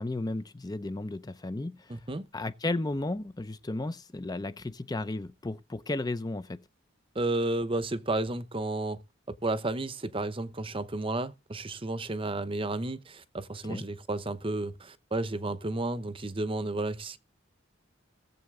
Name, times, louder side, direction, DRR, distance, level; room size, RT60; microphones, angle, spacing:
voice 1, 0.0-2.0 2.3-6.6 13.7-13.8, left 2 dB, 20° left, 0.5 m, -34 dB
voice 2, 1.9-2.3 7.1-9.0 9.4-17.2, right 2 dB, 25° right, 0.8 m, -32 dB
17.5 x 7.5 x 3.6 m
head